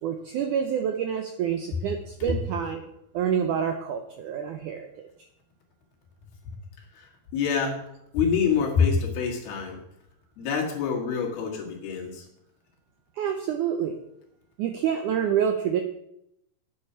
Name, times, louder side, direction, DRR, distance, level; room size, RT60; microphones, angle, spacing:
voice 1, 0.0-2.8 3.1-5.1 13.2-14.0 14.6-15.8, right 8 dB, 85° right, 5 dB, 1.8 m, -27 dB
voice 2, 6.9-7.8 8.1-9.8 10.4-12.3, left 6 dB, 75° left, -1 dB, 3.9 m, -26 dB
9.2 x 9.1 x 5.6 m, 0.80 s
omnidirectional pair, 4.5 m